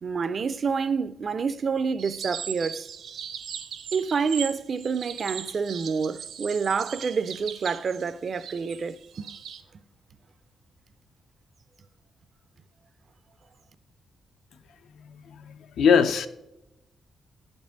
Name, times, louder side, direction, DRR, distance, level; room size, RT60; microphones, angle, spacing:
voice 1, 0.0-2.9 3.9-9.3, right 5 dB, 40° right, 0.4 m, -28 dB
sound 1, 2.0-9.6, right 8 dB, 70° right, 0.7 m, -38 dB
voice 2, 15.1-16.3, left 6 dB, 90° left, 0.6 m, -22 dB
11.0 x 5.3 x 5.0 m
wide cardioid pair, 160°, 0 cm